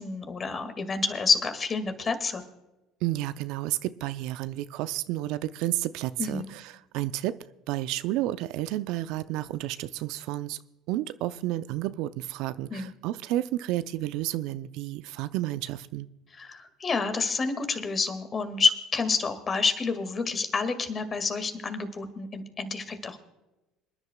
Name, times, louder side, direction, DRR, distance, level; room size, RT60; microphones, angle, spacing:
voice 1, 0.0-2.4 6.2-6.5 12.7-12.9 16.4-23.2, left 4 dB, 35° left, 9 dB, 2.0 m, -28 dB
voice 2, 3.0-7.3 7.7-10.6 10.9-16.1, right 15 dB, 70° right, 14 dB, 0.4 m, -31 dB
27.0 x 10.5 x 2.3 m, 1.0 s
hypercardioid pair, 70°, 0 cm